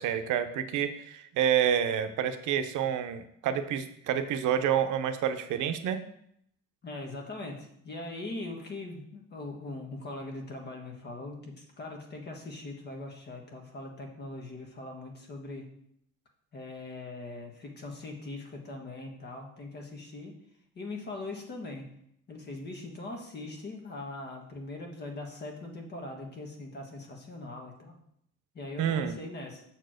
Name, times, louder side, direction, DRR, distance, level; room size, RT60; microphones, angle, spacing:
voice 1, 0.0-6.0 28.8-29.1, right 9 dB, 85° right, 10 dB, 0.8 m, -28 dB
voice 2, 6.8-15.7 16.5-20.3 20.7-21.9 22.3-28.0 28.5-29.6, left 2 dB, 35° left, 2 dB, 1.5 m, -41 dB
6.5 x 4.5 x 6.3 m, 0.71 s
cardioid pair, 165°, 30 cm